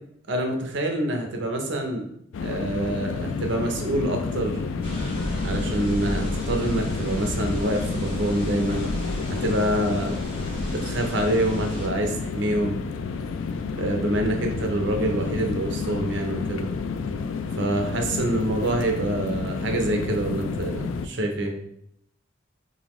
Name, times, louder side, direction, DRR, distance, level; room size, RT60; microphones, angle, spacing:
voice 1, 0.3-2.1 2.4-4.6 5.4-8.9 9.3-10.2 10.7-12.8 13.7-16.7 17.6-21.5, right 1 dB, 65° right, 3 dB, 0.7 m, -26 dB
sound 1, 2.3-21.1, left 4 dB, 80° left, 0.4 m, -30 dB
sound 2, 4.8-11.9, equal, 30° left, 1.7 m, -33 dB
3.9 x 3.8 x 3.0 m, 0.74 s
head